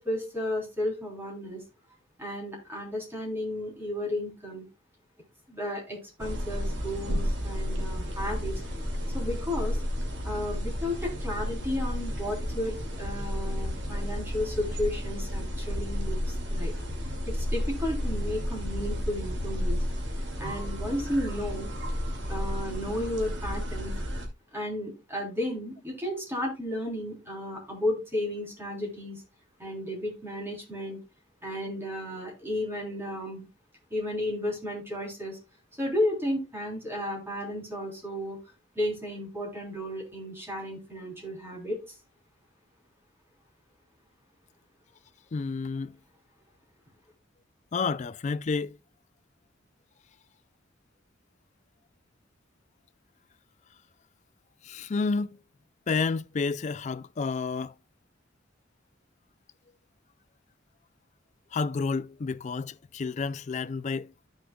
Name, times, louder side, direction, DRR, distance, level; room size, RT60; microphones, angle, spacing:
voice 1, 0.0-1.6 2.2-4.6 5.5-8.6 9.1-9.8 10.2-16.7 17.3-19.8 20.4-21.7 22.3-24.0 24.5-29.2 29.6-31.0 31.4-33.5 33.9-35.4 35.8-38.4 38.8-41.8, left 1 dB, 10° right, 3.5 m, -33 dB
lake ambience with elks, 6.2-24.3, equal, 65° right, 2.2 m, -32 dB
voice 2, 45.3-46.0 47.7-48.8 54.6-55.4 55.9-57.7 61.5-64.1, left 4 dB, 35° left, 0.4 m, -30 dB
14.0 x 6.4 x 2.3 m
head